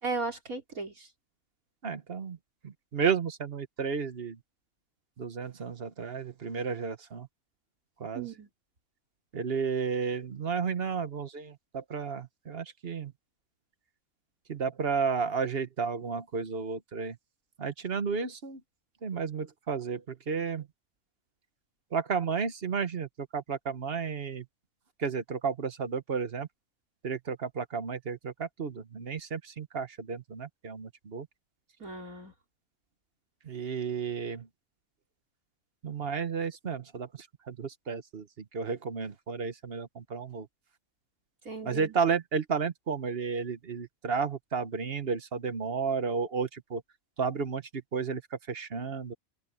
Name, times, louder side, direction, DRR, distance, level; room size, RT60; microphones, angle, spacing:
voice 1, 0.0-1.1 8.1-8.5 31.8-32.3 41.4-41.9, right 3 dB, 85° right, 4.6 m, -36 dB
voice 2, 1.8-2.4 2.6-4.4 5.2-7.3 8.0-8.3 9.3-13.1 14.5-17.2 17.6-18.6 19.0-20.7 21.9-24.5 25.0-26.5 27.0-31.3 33.4-34.5 35.8-40.5 41.6-46.8 47.2-49.1, right 5 dB, 45° right, 1.3 m, -32 dB
open air
omnidirectional pair, 1.4 m